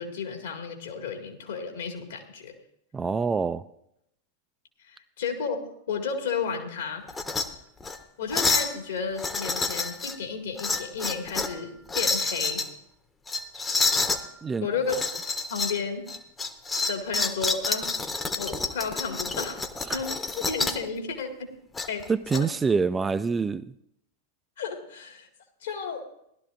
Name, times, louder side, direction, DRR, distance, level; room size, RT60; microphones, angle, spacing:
voice 1, 0.0-2.5 4.8-7.1 8.2-12.6 14.6-15.0 15.5-16.1 16.9-17.9 18.4-21.5 21.9-22.5 24.6-25.3 25.6-26.1, left 5 dB, 65° left, 3 dB, 1.9 m, -33 dB
voice 2, 2.9-3.6 14.4-14.7 19.9-20.0 22.1-23.6, right 5 dB, 15° right, 12 dB, 0.4 m, -26 dB
sound 1, 7.1-7.5 7.8-8.0 8.3-8.7 9.2-10.2 10.6-11.6 11.9-12.7 13.3-14.2 14.9-15.8 16.1-20.8 21.8-22.4, left 3 dB, 15° left, 0.9 m, -28 dB
17.5 x 12.0 x 2.5 m, 0.77 s
figure-of-eight pair, 90°, 0 cm